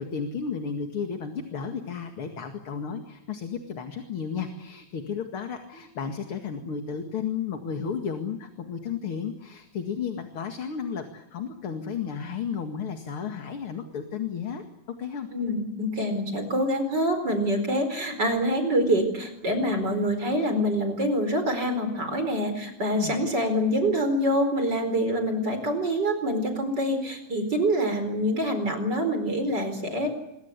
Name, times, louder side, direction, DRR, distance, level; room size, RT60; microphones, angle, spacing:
voice 1, 0.0-14.6 15.0-15.3 22.9-23.2, left 6 dB, 45° left, 5 dB, 2.7 m, -33 dB
voice 2, 15.3-30.1, equal, 35° right, 7 dB, 4.9 m, -26 dB
27.0 x 23.0 x 8.3 m, 0.88 s
omnidirectional pair, 3.5 m